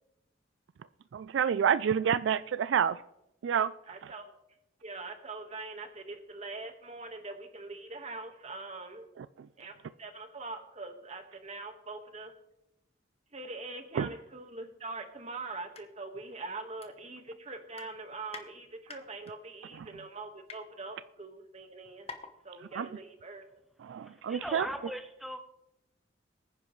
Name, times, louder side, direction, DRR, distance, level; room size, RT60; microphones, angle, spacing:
voice 1, 1.1-3.0 3.4-3.7 4.0-4.1 9.2-9.5 13.9-14.1 19.8-19.9 22.8-22.9 23.8-24.7, right 8 dB, 75° right, 0.3 m, -29 dB
voice 2, 3.9-4.3 4.8-9.1 9.6-12.3 13.3-22.1 22.4-23.4, right 3 dB, 35° right, 1.5 m, -43 dB
sound 1, 15.7-15.8 16.2-16.3 16.8-17.4 17.7-18.5 18.9-19.3 20.0-20.6 21.3-21.4 21.6-21.7 22.1-22.4 22.7-22.8, left 5 dB, 35° left, 1.0 m, -47 dB
voice 3, 24.0-25.4, equal, ahead, 0.8 m, -39 dB
22.5 x 9.9 x 3.1 m
head